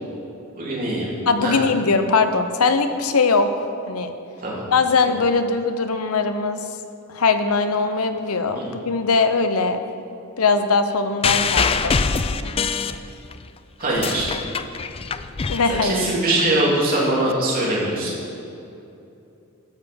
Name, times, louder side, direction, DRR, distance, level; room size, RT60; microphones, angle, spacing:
voice 1, 0.6-1.1 1.4-1.6 4.4-4.6 8.5-8.6 13.8-14.3 15.8-18.1, right 1 dB, 40° right, -5 dB, 3.2 m, -22 dB
voice 2, 1.3-3.5 3.9-4.1 4.7-6.6 7.1-9.8 10.4-12.0 15.5-16.1, left 4 dB, 80° left, 9 dB, 0.8 m, -20 dB
sound 1, 11.2-13.4 13.8-16.4 17.3-17.4, left 5 dB, 25° left, 0.4 m, -24 dB
12.5 x 6.9 x 7.0 m, 2.8 s
head